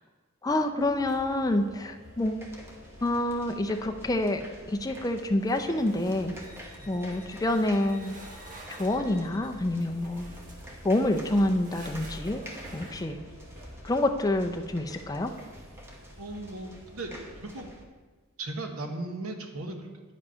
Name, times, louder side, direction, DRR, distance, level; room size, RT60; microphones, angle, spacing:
voice 1, 0.4-2.5 3.0-4.4 4.7-6.3 6.9-8.2 8.8-10.3 10.8-12.4 12.7-13.2 13.8-15.3, left 1 dB, 15° left, 5 dB, 0.4 m, -27 dB
sound 1, 0.8-17.7, equal, 65° right, 2.7 m, -52 dB
sound 2, 1.1-1.6 1.9-2.3 5.4-6.7 7.4-9.1 9.8-13.6, right 2 dB, 40° right, 1.3 m, -50 dB
sound 3, 2.2-17.8, equal, 10° right, 1.1 m, -47 dB
voice 2, 16.2-17.7 18.4-20.1, right 2 dB, 85° right, 4 dB, 1.1 m, -37 dB
9.6 x 5.2 x 5.6 m, 1.4 s
head